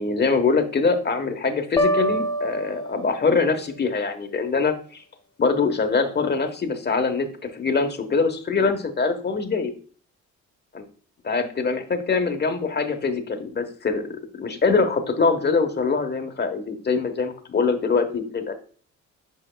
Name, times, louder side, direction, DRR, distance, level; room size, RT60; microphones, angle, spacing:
voice 1, 0.0-5.0 5.4-9.7 11.3-18.5, left 4 dB, 35° left, 7 dB, 1.2 m, -23 dB
sound 1, 1.8-3.7, equal, 15° left, 0.6 m, -26 dB
7.9 x 5.6 x 2.3 m, 0.43 s
cardioid pair, 90°, 30 cm